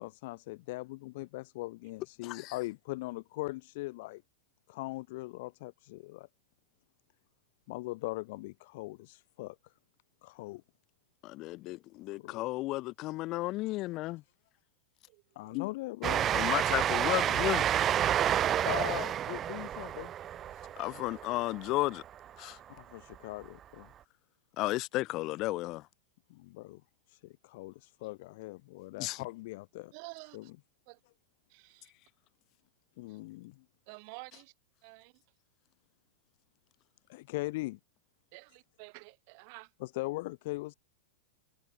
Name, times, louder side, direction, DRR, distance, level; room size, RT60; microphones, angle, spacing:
voice 1, 0.0-4.2 4.7-6.3 7.7-9.6 10.2-10.6 12.2-12.4 15.3-16.4 18.6-20.1 22.7-23.9 26.3-26.8 27.1-29.9 30.3-30.5 33.0-33.6 37.1-37.8 39.8-40.7, left 21 dB, 55° left, 1.5 m, -40 dB
voice 2, 2.2-2.5 11.2-14.2 15.5-15.7 16.3-17.7 20.8-22.0 22.4-22.6 24.6-25.9 29.0-29.2, left 19 dB, 35° left, 0.4 m, -33 dB
voice 3, 15.1-15.6 20.7-20.8 29.9-30.5 30.9-31.0 31.5-31.9 33.1-33.2 33.9-34.5 34.8-35.1 38.3-39.7, right 36 dB, 50° right, 2.0 m, -50 dB
Train, 16.0-22.2, right 10 dB, 25° right, 0.5 m, -30 dB
supercardioid pair, 150°, 0 cm